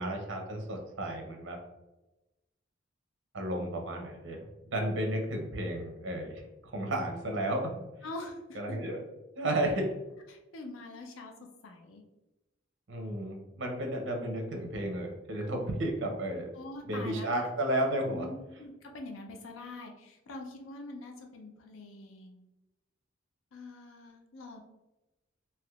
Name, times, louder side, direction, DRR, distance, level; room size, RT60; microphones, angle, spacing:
voice 1, 0.0-1.6 3.3-7.7 8.5-9.0 9.4-9.9 12.9-16.5 16.8-18.3, right 1 dB, 70° right, 2 dB, 0.7 m, -33 dB
voice 2, 8.0-8.8 9.7-9.8 10.3-12.0 16.5-17.5 18.1-22.5 23.5-24.6, left 2 dB, 85° left, 3 dB, 0.5 m, -44 dB
3.4 x 2.8 x 2.3 m, 1.0 s
head